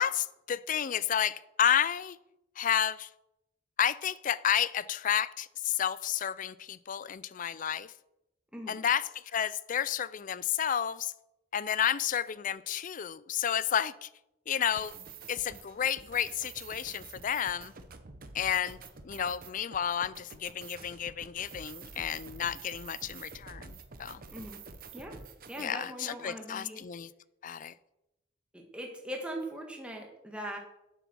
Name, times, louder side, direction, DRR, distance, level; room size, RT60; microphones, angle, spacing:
voice 1, 0.0-2.2 2.6-3.1 3.8-7.9 8.7-11.1 11.5-14.1 14.5-17.7 18.3-24.2 25.6-27.1 27.4-27.7, left 9 dB, 40° left, 18 dB, 0.4 m, -31 dB
sound 1, 14.7-25.7, right 5 dB, 45° right, 0.9 m, -48 dB
voice 2, 25.5-26.8 28.5-30.6, right 1 dB, 5° right, 1 dB, 1.5 m, -40 dB
9.2 x 8.0 x 6.2 m, 0.92 s
head